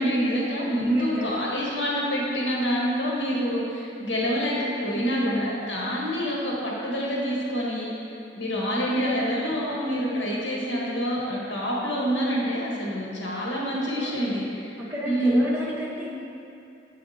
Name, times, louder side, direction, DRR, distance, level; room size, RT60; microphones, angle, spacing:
voice 1, 0.0-14.8 15.0-15.4, equal, 75° left, -5 dB, 1.6 m, -26 dB
voice 2, 0.5-1.3 4.9-5.2 13.7-14.3 14.9-16.2, equal, 15° right, -9 dB, 1.5 m, -33 dB
7.5 x 5.0 x 4.2 m, 2.6 s
head